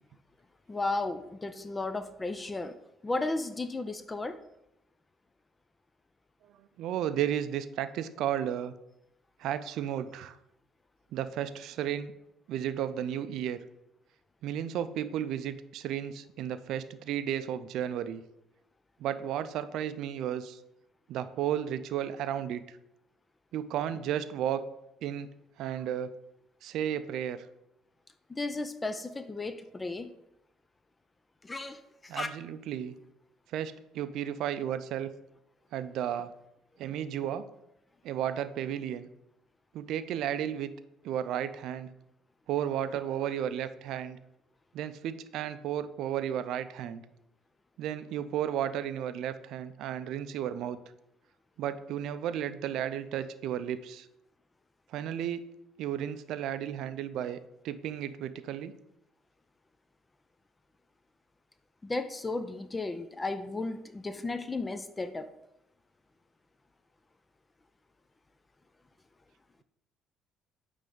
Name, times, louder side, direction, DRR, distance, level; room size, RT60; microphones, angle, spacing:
voice 1, 0.7-2.7 3.0-4.4 28.3-30.1 31.4-32.4 61.8-65.3, left 2 dB, 20° left, 10 dB, 0.4 m, -34 dB
voice 2, 6.8-8.7 9.4-10.4 11.1-12.1 12.5-13.6 14.4-18.2 19.0-20.6 21.1-22.6 23.5-24.7 25.0-25.3 25.6-26.1 26.6-27.5 32.1-33.0 33.5-35.1 35.7-36.3 36.8-37.4 38.0-39.1 39.7-40.7 41.0-41.9 42.5-44.2 44.7-47.0 47.8-50.8 51.6-54.1 54.9-55.5 55.8-57.4 57.6-58.7, right 10 dB, 70° right, 13 dB, 0.4 m, -33 dB
8.9 x 3.4 x 3.8 m, 0.84 s
supercardioid pair, 80°, 0 cm